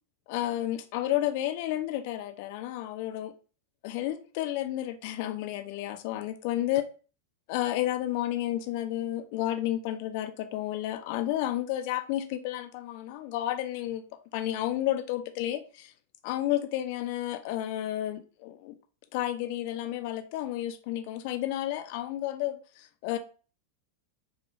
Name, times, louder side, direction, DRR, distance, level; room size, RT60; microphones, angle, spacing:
voice 1, 0.3-3.3 3.8-6.8 7.5-14.0 14.3-15.9 16.2-18.8 19.1-23.2, left 13 dB, 45° left, 0.3 m, -31 dB
2.7 x 2.0 x 2.5 m
figure-of-eight pair, 90°, 0 cm